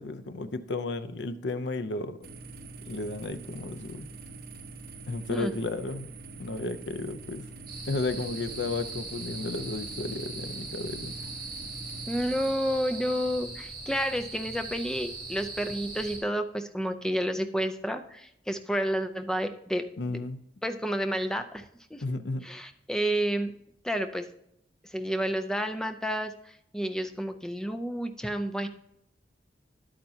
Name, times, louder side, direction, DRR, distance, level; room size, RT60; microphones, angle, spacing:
voice 1, 0.0-2.2 2.8-4.1 5.1-7.5 7.9-11.2 20.0-20.4 22.0-22.5, left 3 dB, 80° left, 11 dB, 0.6 m, -33 dB
sound 1, 2.2-12.5, right 3 dB, 60° right, 1.0 m, -45 dB
sound 2, 7.7-16.2, right 3 dB, 30° right, 3.5 m, -40 dB
voice 2, 12.1-20.2 20.6-21.6 21.9-22.0 22.4-23.5 23.8-24.3 24.9-26.3 26.7-28.7, equal, 5° left, 7 dB, 0.5 m, -30 dB
11.0 x 8.8 x 2.8 m, 0.77 s
head